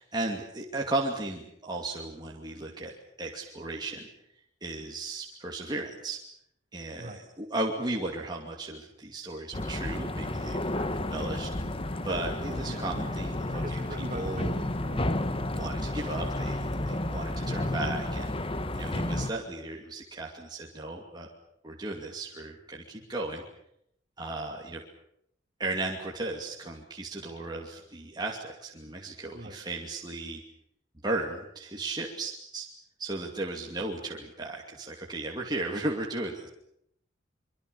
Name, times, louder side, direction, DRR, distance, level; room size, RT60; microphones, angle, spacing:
voice 1, 0.1-4.1 4.6-6.2 6.7-11.5 12.0-13.8 14.1-14.7 15.5-18.3 18.7-21.3 21.6-23.4 24.2-24.8 25.6-30.4 31.0-32.7 33.0-36.5, right 2 dB, 20° right, -1 dB, 2.6 m, -35 dB
sound 1, 9.5-19.3, left 1 dB, 30° left, 1.3 m, -31 dB
voice 2, 12.5-12.9 13.2-15.0 18.9-19.2 29.3-29.6, right 1 dB, 40° right, 4 dB, 3.5 m, -42 dB
25.5 x 24.0 x 7.1 m, 0.74 s
head